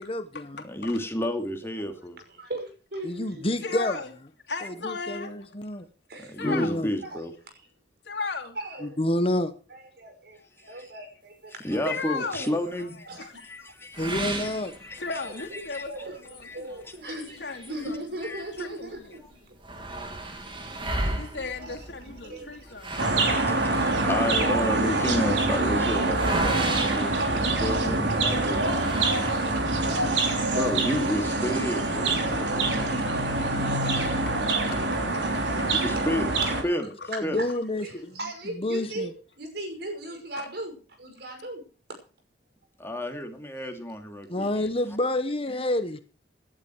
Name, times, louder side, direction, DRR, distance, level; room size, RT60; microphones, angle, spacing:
voice 1, 0.0-0.6 3.0-4.0 4.6-5.8 6.4-6.9 8.8-9.5 14.0-14.7 37.1-38.2 38.6-39.1 44.3-46.0, left 1 dB, 35° left, 1.1 m, -28 dB
voice 2, 0.7-2.2 6.2-7.3 11.6-13.1 13.4-14.0 14.8-15.0 15.7-15.8 16.4-16.6 17.1-17.2 18.2-18.4 21.0-21.8 22.3-22.5 22.9-28.9 30.4-32.9 35.2-36.3 36.6-36.9 37.2-37.4 42.8-44.7, left 1 dB, 15° left, 2.7 m, -32 dB
voice 3, 2.3-3.5 6.1-6.3 7.0-7.2 8.6-9.0 9.7-12.6 13.1-13.4 15.1-19.6 21.2-22.7 28.1-28.2 36.0-36.1 37.4-41.6 41.9-42.0 43.6-43.7, right 1 dB, 65° right, 5.7 m, -39 dB
voice 4, 3.6-4.1 4.5-5.3 6.4-6.8 8.0-8.6 11.8-13.5 14.0-14.1 14.4-14.6 14.9-16.8 17.4-18.0 18.6-19.1 21.0-22.9 33.0-33.1 33.6-35.7 37.0-37.1 40.3-40.5 45.5-45.7, left 4 dB, 75° left, 2.9 m, -36 dB
sound 1, 13.9-15.4 15.8-15.9 16.4-16.5 17.3-18.6 18.9-19.0 19.3-28.0 28.7-29.8, right 2 dB, 30° right, 2.8 m, -34 dB
sound 2, 23.0-36.6, right 2 dB, 85° right, 3.6 m, -25 dB
18.0 x 11.5 x 4.8 m
head